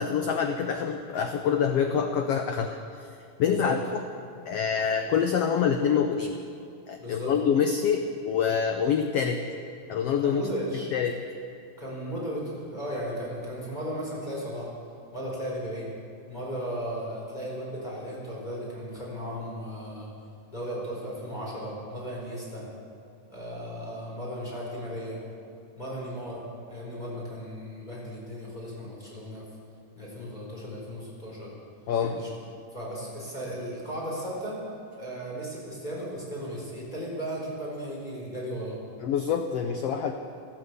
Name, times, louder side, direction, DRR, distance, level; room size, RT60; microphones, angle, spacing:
voice 1, 0.0-2.8 3.4-3.8 4.5-6.4 6.9-9.4 9.9-10.4 10.9-11.2 31.9-32.2 39.0-40.1, left 7 dB, 90° left, 6 dB, 1.3 m, -26 dB
voice 2, 3.4-3.8 6.9-7.4 10.2-10.9 11.8-14.7 15.1-15.9 16.3-20.1 20.5-22.6 23.3-25.2 25.8-29.5 29.9-31.5 32.1-32.3 32.7-34.6 34.9-38.8, equal, 15° left, -4 dB, 4.2 m, -36 dB
13.5 x 13.0 x 8.1 m, 2.5 s
omnidirectional pair, 3.7 m